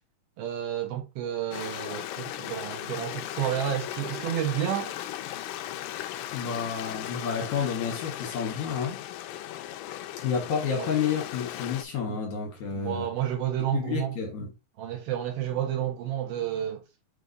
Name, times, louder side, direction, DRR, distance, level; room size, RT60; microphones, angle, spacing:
voice 1, 0.4-4.9 10.8-10.9 12.1-12.2 12.7-14.1 14.8-16.8, right 10 dB, 75° right, 3.2 m, -30 dB
Stream, 1.5-11.8, left 13 dB, 80° left, 2.1 m, -37 dB
voice 2, 6.3-9.0 10.2-13.1 13.7-14.5, left 6 dB, 55° left, 2.6 m, -30 dB
7.0 x 3.5 x 4.0 m
omnidirectional pair, 4.4 m